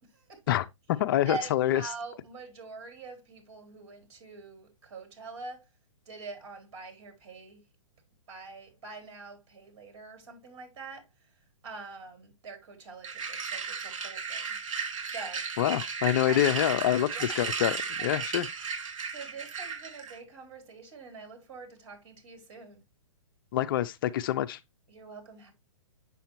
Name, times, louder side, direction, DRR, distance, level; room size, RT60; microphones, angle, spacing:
voice 1, 0.0-0.4 1.3-5.7 6.1-7.6 8.3-11.1 11.6-14.6 15.1-15.4 16.2-16.4 17.1-17.4 19.1-22.8 24.9-25.5, right 4 dB, 55° right, 4.4 m, -44 dB
voice 2, 1.0-1.8 15.6-18.5 23.5-24.6, left 12 dB, 40° left, 0.5 m, -26 dB
sound 1, 13.0-20.2, right 6 dB, 70° right, 2.9 m, -35 dB
7.5 x 6.9 x 3.0 m
hypercardioid pair, 145°, 17 cm